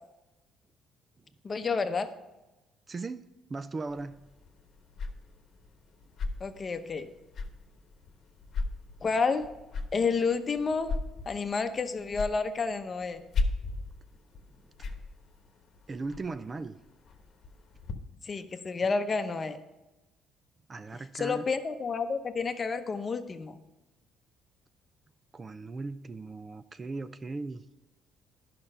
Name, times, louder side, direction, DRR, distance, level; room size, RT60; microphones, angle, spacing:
voice 1, 1.4-2.1 6.4-7.1 9.0-9.5 9.9-10.9 11.3-13.2 18.2-19.6 21.1-23.6, left 4 dB, 30° left, 0.8 m, -30 dB
voice 2, 2.9-4.2 15.9-16.8 20.7-21.4 25.3-27.6, right 3 dB, 25° right, 0.4 m, -38 dB
sound 1, 3.9-17.9, left 3 dB, 50° left, 1.1 m, -38 dB
11.0 x 5.9 x 5.5 m
cardioid pair, 110°, 0 cm